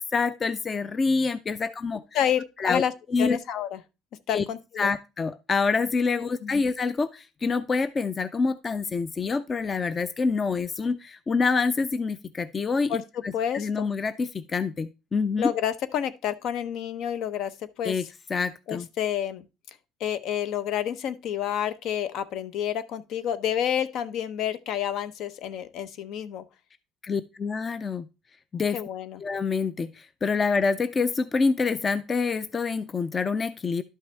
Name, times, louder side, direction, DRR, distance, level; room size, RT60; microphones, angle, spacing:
voice 1, 0.1-2.0 2.6-2.8 3.1-3.4 4.3-4.4 4.8-15.5 17.8-18.0 18.3-18.9 27.0-28.0 28.5-28.8 29.2-33.8, left 4 dB, 25° left, 0.5 m, -26 dB
voice 2, 2.1-2.9 3.2-3.8 4.3-4.9 6.4-6.6 12.9-13.0 13.3-13.9 15.4-18.1 18.7-19.4 20.0-26.4 28.7-29.2, left 9 dB, 65° left, 0.9 m, -29 dB
11.5 x 5.6 x 3.5 m
cardioid pair, 120°, 0 cm